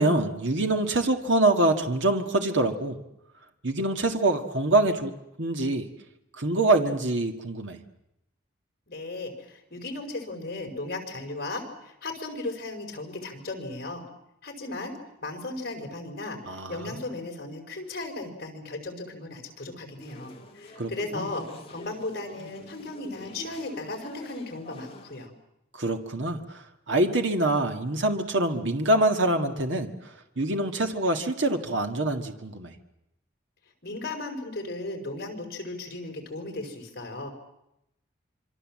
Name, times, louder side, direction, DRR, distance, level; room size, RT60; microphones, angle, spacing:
voice 1, 0.0-3.0 3.6-5.1 5.4-5.9 6.4-7.8 16.5-17.0 20.8-21.3 25.7-30.1 30.4-32.7, right 2 dB, 80° right, 5 dB, 1.8 m, -25 dB
voice 2, 8.9-14.0 14.4-25.3 33.8-37.3, left 2 dB, 50° left, 3 dB, 5.0 m, -36 dB
sound 1, 20.0-25.3, left 1 dB, 30° left, 2.5 m, -45 dB
26.5 x 25.0 x 7.5 m, 0.84 s
head